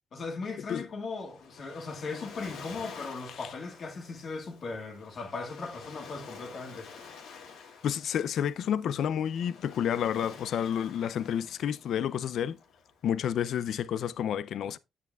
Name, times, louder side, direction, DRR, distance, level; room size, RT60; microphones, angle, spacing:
voice 1, 0.1-6.9, left 4 dB, 50° left, 1.9 m, -38 dB
Waves surf, 0.9-13.3, left 5 dB, 85° left, 2.4 m, -49 dB
voice 2, 7.8-12.6 13.0-14.8, left 9 dB, 70° left, 0.4 m, -30 dB
9.2 x 8.4 x 2.4 m
cardioid pair, 90°, 0 cm